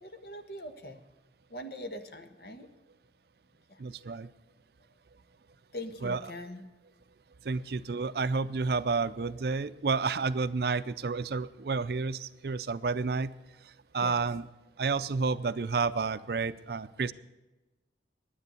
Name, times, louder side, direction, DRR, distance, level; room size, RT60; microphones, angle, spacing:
voice 1, 0.0-1.0 1.5-2.7 5.7-6.6 14.0-14.2, left 1 dB, 55° left, 6 dB, 1.3 m, -42 dB
voice 2, 3.8-4.3 6.0-6.3 7.4-13.3 13.9-14.5 14.8-17.1, right 4 dB, 60° right, 14 dB, 0.5 m, -30 dB
11.0 x 9.7 x 8.3 m, 1.1 s
head